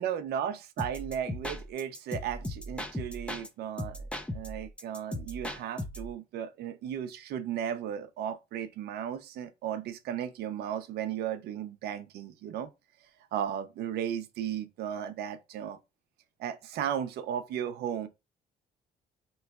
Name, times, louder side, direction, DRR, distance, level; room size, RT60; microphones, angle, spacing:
voice 1, 0.0-4.0 4.3-12.7 13.3-15.8 16.4-18.1, right 9 dB, 70° right, 0.6 m, -35 dB
sound 1, 0.8-3.5 3.8-6.1, left 1 dB, 5° left, 0.5 m, -37 dB
4.6 x 3.0 x 2.4 m
cardioid pair, 110°, 17 cm